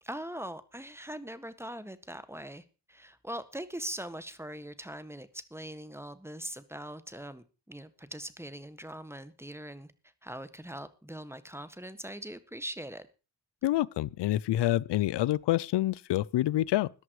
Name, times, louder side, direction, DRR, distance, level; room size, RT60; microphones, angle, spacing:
voice 1, 0.0-9.9 10.2-13.1, right 1 dB, 5° right, 1.6 m, -41 dB
voice 2, 13.6-16.9, left 14 dB, 90° left, 0.6 m, -27 dB
14.5 x 11.0 x 4.7 m
cardioid pair, 70°, 40 cm